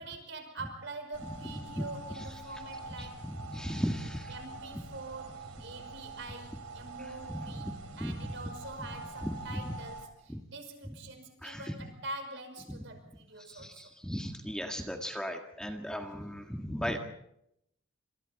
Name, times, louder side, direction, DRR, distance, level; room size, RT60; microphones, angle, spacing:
voice 1, 0.0-3.3 4.3-7.7 8.0-13.9 16.0-16.2, right 2 dB, 55° right, 5 dB, 5.4 m, -45 dB
sound 1, 1.1-10.1, right 3 dB, 90° right, 3.5 m, -46 dB
voice 2, 1.2-2.4 3.0-3.1 3.3-4.3 7.3-8.3 8.8-8.9 9.2-9.7 10.3-10.4 10.8-10.9 11.4-11.7 12.7-12.8 13.4-17.0, equal, 5° left, 3 dB, 1.8 m, -37 dB
28.5 x 26.5 x 4.2 m, 0.77 s
head